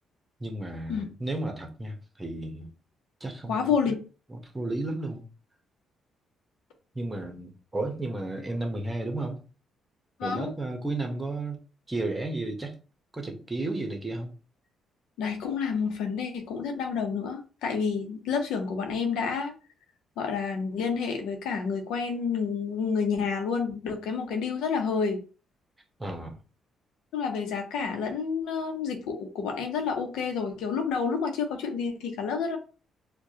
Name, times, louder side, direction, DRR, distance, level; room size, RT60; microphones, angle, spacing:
voice 1, 0.4-2.7 3.2-3.7 4.3-5.2 6.9-9.4 10.2-11.6 11.9-12.8 13.1-14.3 26.0-26.4, right 2 dB, 15° right, 0.9 m, -33 dB
voice 2, 3.5-4.0 10.2-10.5 15.2-19.5 20.2-25.2 27.1-32.6, left 5 dB, 90° left, 0.7 m, -29 dB
4.6 x 2.2 x 2.8 m
cardioid pair, 90°, 0 cm